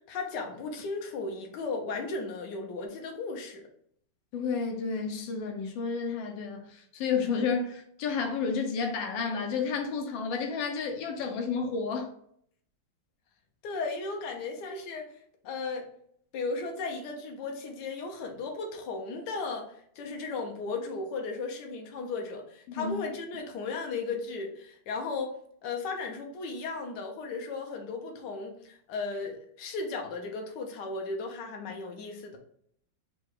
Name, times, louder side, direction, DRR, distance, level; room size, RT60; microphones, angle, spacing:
voice 1, 0.0-3.6 13.6-15.1 15.4-15.9 16.3-25.3 25.6-32.4, left 3 dB, 70° left, 1.4 m, -35 dB
voice 2, 4.3-12.1 22.8-23.0, left 5 dB, 85° left, 1.4 m, -31 dB
4.7 x 2.3 x 4.6 m
omnidirectional pair, 2.0 m